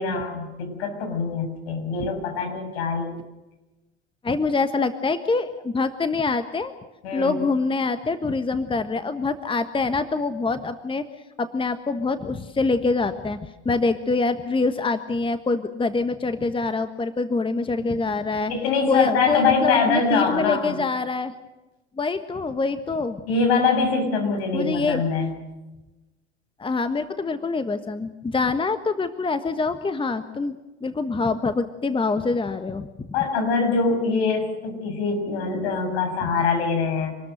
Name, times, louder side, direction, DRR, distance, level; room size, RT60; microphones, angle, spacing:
voice 1, 0.0-3.1 7.0-7.3 17.8-18.0 18.5-20.7 23.3-25.3 33.1-37.2, left 4 dB, 65° left, 5 dB, 6.9 m, -23 dB
voice 2, 4.2-6.7 7.1-11.1 11.4-18.5 18.9-21.3 22.0-23.2 24.5-25.0 26.6-33.1, left 3 dB, 15° left, 10 dB, 1.4 m, -25 dB
27.0 x 20.0 x 6.5 m, 1.1 s
hypercardioid pair, 75°, 33 cm